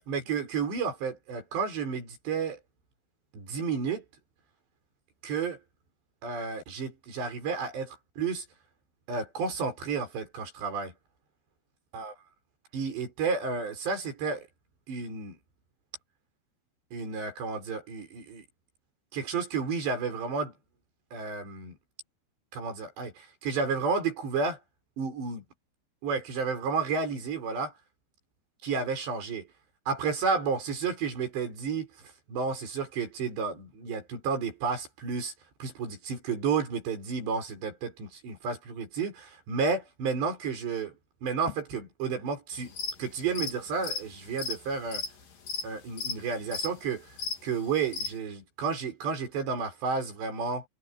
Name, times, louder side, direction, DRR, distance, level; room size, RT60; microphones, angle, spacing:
voice 1, 0.0-2.6 3.3-4.0 5.2-5.6 6.2-8.4 9.1-10.9 11.9-12.1 12.7-14.5 14.9-15.4 16.9-18.4 19.1-20.5 21.1-21.8 22.5-24.6 25.0-25.4 26.0-27.7 28.6-29.5 29.9-31.9 32.3-35.3 35.6-41.0 41.2-45.0 45.6-47.1 47.4-50.6, right 5 dB, 65° right, 8.0 m, -31 dB
sound 1, 42.6-43.0 43.3-48.1, left 5 dB, 50° left, 4.2 m, -34 dB
omnidirectional pair, 5.4 m